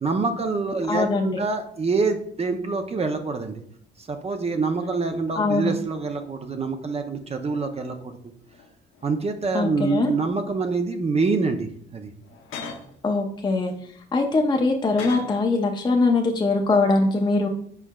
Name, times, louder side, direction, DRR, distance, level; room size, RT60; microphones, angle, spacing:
voice 1, 0.0-3.6 4.0-7.9 9.0-12.1, right 4 dB, 30° right, 5 dB, 0.5 m, -26 dB
voice 2, 0.9-1.4 5.3-5.7 9.5-10.1 13.0-13.7 14.1-17.5, left 3 dB, 20° left, 2 dB, 0.5 m, -22 dB
sound 1, 5.3-5.8 6.6-8.1 8.4-9.4 9.8-10.5 11.2-11.4 12.2-13.0 13.7-15.6 15.9-16.1, left 4 dB, 80° left, 0.8 m, -43 dB
4.6 x 4.5 x 2.2 m, 0.67 s
cardioid pair, 90°, 20 cm